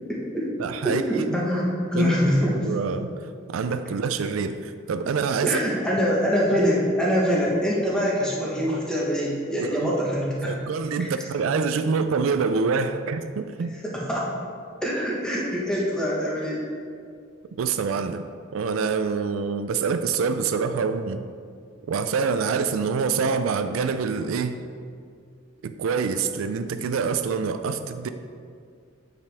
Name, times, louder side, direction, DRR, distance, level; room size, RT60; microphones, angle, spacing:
voice 1, 0.1-0.5 0.8-2.7 5.4-10.5 13.9-14.3 14.8-16.6, equal, 5° left, -5 dB, 1.1 m, -24 dB
voice 2, 0.6-1.5 1.9-2.2 2.4-5.6 9.6-9.9 10.4-13.7 17.5-18.3 18.5-21.3 21.9-24.6 25.6-28.1, right 5 dB, 90° right, 9 dB, 0.4 m, -26 dB
8.1 x 5.1 x 3.4 m, 2.2 s
head